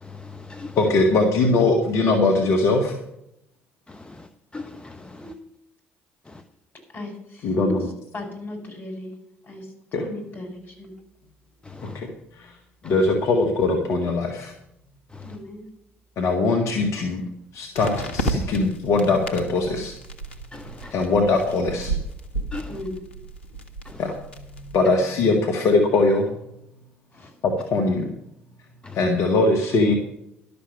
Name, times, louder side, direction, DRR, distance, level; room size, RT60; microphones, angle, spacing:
voice 1, 0.0-0.8 3.9-4.3 4.5-5.3 6.3-6.4 11.7-12.0 15.1-15.4 20.5-20.9 22.5-22.7 23.9-24.0 28.8-29.0, left 3 dB, 15° left, 1.0 m, -39 dB
voice 2, 0.8-3.0 7.4-7.9 9.9-10.0 11.8-12.1 12.4-12.5 12.8-14.5 16.2-17.2 17.5-19.9 20.9-21.9 24.0-26.3 27.4-28.1 28.9-29.9, left 3 dB, 50° left, 1.8 m, -21 dB
voice 3, 6.9-7.7 8.1-9.1 9.4-10.9 15.2-15.6 18.5-18.6 22.6-23.0 27.1-27.3, left 1 dB, 30° left, 5.4 m, -37 dB
sound 1, 11.0-11.1 17.7-24.8, right 1 dB, 80° left, 1.2 m, -33 dB
12.0 x 6.9 x 8.3 m
figure-of-eight pair, 55°, 6 cm